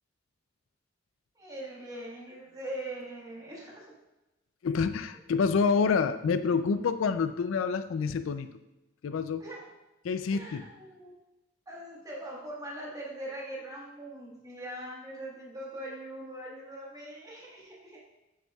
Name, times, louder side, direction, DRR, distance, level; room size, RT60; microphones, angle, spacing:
voice 1, 1.3-3.9 9.4-9.7 10.3-11.2 11.7-18.0, right 1 dB, 20° right, -3 dB, 1.4 m, -41 dB
voice 2, 4.6-8.5 9.0-9.4 10.0-10.6, left 5 dB, 80° left, 10 dB, 0.4 m, -27 dB
8.0 x 7.4 x 2.3 m, 1.0 s
head